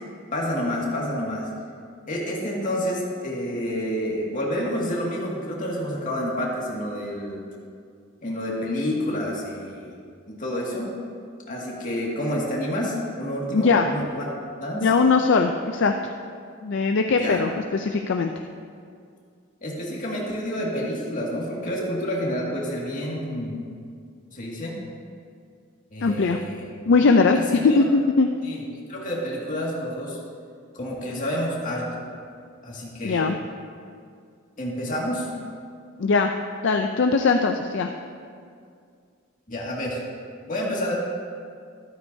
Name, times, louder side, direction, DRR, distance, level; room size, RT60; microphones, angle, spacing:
voice 1, 0.3-1.5 2.1-7.4 8.2-10.0 10.3-10.9 11.5-14.3 14.6-14.9 17.1-17.4 19.6-23.6 24.3-24.8 25.9-26.6 27.3-27.8 28.4-28.6 28.9-30.2 30.7-32.0 32.6-33.2 34.6-35.3 39.5-40.0 40.5-40.9, equal, 40° left, -3 dB, 2.1 m, -29 dB
voice 2, 13.5-13.9 14.8-15.9 16.6-18.3 26.0-26.4 26.9-28.3 33.0-33.4 36.0-36.3 36.6-37.9, left 4 dB, 60° left, 5 dB, 0.4 m, -20 dB
13.0 x 12.5 x 2.7 m, 2.2 s
head